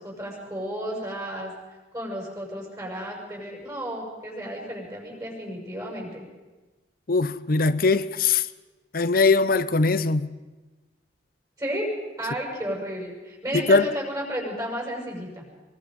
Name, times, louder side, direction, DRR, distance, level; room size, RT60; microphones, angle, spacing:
voice 1, 0.0-1.5 1.9-6.2 11.6-15.4, equal, 20° right, 6.8 m, -32 dB
voice 2, 7.1-8.5 8.9-10.3 13.5-13.9, left 4 dB, 55° left, 0.8 m, -21 dB
23.5 x 23.5 x 5.4 m
head